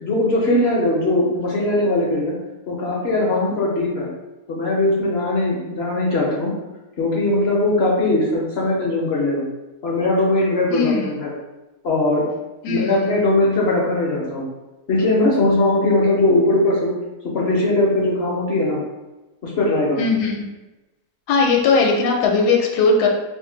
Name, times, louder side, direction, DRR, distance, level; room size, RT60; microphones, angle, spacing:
voice 1, 0.0-2.4 2.7-4.1 4.5-6.5 7.0-9.4 9.8-11.3 11.8-12.2 12.7-14.4 14.9-16.9 17.3-18.8 19.4-20.0, left 2 dB, 55° left, -3 dB, 0.7 m, -20 dB
voice 2, 10.7-11.1 12.6-13.2 20.0-20.4 21.3-23.1, left 4 dB, 75° left, 1 dB, 1.1 m, -19 dB
2.8 x 2.5 x 3.7 m, 1.1 s
omnidirectional pair, 1.7 m